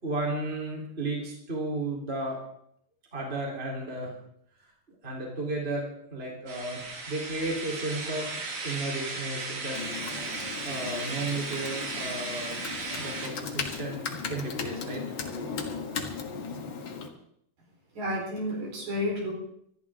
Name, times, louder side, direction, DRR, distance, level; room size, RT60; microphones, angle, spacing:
voice 1, 0.0-2.4 3.1-4.1 5.0-9.8 10.6-12.6 12.9-15.0 15.5-15.6, right 2 dB, 15° right, -1 dB, 3.6 m, -34 dB
sound 1, 6.5-13.3, right 3 dB, 90° right, 5.2 m, -36 dB
Computer keyboard, 9.7-17.1, left 5 dB, 45° left, 1.7 m, -37 dB
voice 2, 18.0-19.3, left 1 dB, 55° right, -1 dB, 5.4 m, -31 dB
25.5 x 13.0 x 3.7 m, 0.70 s
omnidirectional pair, 4.2 m